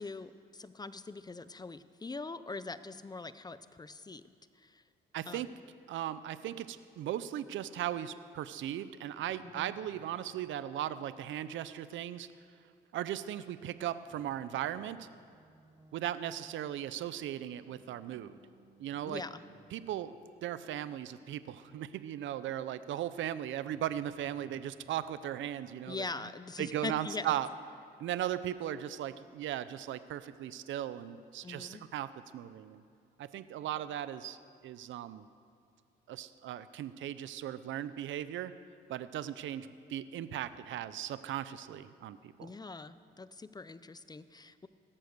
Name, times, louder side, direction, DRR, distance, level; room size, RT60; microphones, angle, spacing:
voice 1, 0.0-4.2 4.6-4.8 5.3-5.4 9.4-9.7 19.1-19.4 25.9-27.3 31.4-31.8 42.4-44.7, left 3 dB, 20° left, 14 dB, 0.6 m, -42 dB
voice 2, 5.1-5.5 5.9-12.3 12.9-15.1 15.9-18.4 18.8-19.2 19.7-20.2 20.4-26.1 26.6-27.5 28.0-32.8 33.2-34.4 34.6-35.3 36.1-38.5 38.9-42.5, right 11 dB, 75° right, 14 dB, 0.6 m, -37 dB
sound 1, 9.2-13.2 14.1-22.9 23.7-24.8, right 3 dB, 20° right, 2.6 m, -64 dB
16.5 x 13.0 x 6.7 m, 2.3 s
cardioid pair, 90°, 20 cm